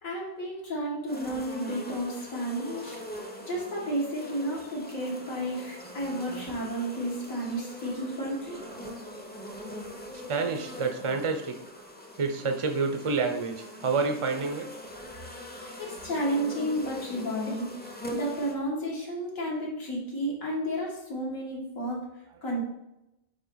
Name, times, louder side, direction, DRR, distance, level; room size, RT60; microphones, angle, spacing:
voice 1, 0.0-3.0 3.5-8.6 15.5-17.7 18.1-22.1 22.4-22.6, right 1 dB, 75° left, -4 dB, 2.4 m, -32 dB
sound 1, 1.1-18.6, left 1 dB, 10° left, 0.6 m, -42 dB
voice 2, 8.2-9.3 9.6-9.8 10.3-11.5 12.2-14.7 22.3-22.5, right 4 dB, 35° right, 5 dB, 0.6 m, -30 dB
8.8 x 3.9 x 4.0 m, 0.88 s
omnidirectional pair, 1.4 m